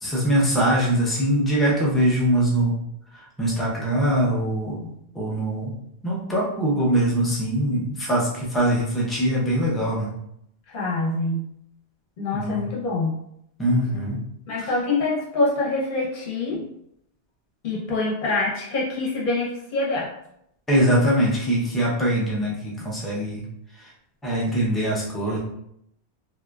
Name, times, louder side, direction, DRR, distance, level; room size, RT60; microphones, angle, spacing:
voice 1, 0.0-2.8 3.4-4.9 5.2-5.7 6.0-10.1 12.3-12.6 13.6-14.2 16.5-16.6 20.7-23.4 24.2-25.4, right 1 dB, ahead, -5 dB, 0.3 m, -22 dB
voice 2, 10.7-11.4 12.2-13.1 14.5-16.6 17.6-20.1, left 2 dB, 55° left, -4 dB, 0.9 m, -25 dB
2.7 x 2.2 x 2.2 m, 0.75 s
omnidirectional pair, 1.1 m